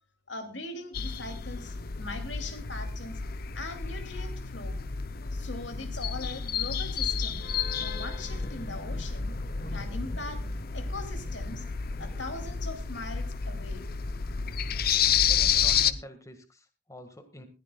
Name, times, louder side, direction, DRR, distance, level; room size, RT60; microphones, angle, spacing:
voice 1, 0.3-3.2 3.5-4.8 5.3-7.4 7.7-9.3 9.7-10.4 10.7-11.6 12.0-13.9, left 2 dB, 80° left, 7 dB, 2.7 m, -41 dB
sound 1, 0.9-15.9, left 7 dB, 55° left, 0.7 m, -30 dB
sound 2, 7.6-12.7, left 1 dB, 40° left, 1.3 m, -46 dB
voice 2, 15.1-17.5, left 1 dB, 20° left, 8 dB, 1.8 m, -47 dB
20.5 x 15.0 x 2.3 m, 0.29 s
head